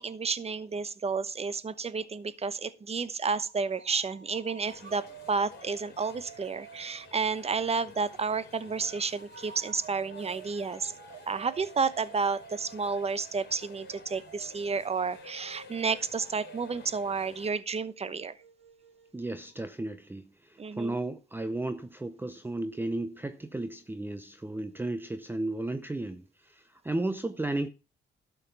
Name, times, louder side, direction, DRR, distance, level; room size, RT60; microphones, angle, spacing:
voice 1, 0.0-10.9 11.3-18.3 20.6-21.0, right 5 dB, 30° right, 1.0 m, -31 dB
sound 1, 3.3-7.7 8.2-19.6, right 7 dB, 80° right, 3.5 m, -51 dB
sound 2, 4.7-17.5, left 6 dB, 55° left, 3.3 m, -53 dB
voice 2, 19.1-27.7, right 2 dB, 10° right, 0.7 m, -34 dB
12.5 x 5.9 x 5.5 m
cardioid pair, 90°, 20 cm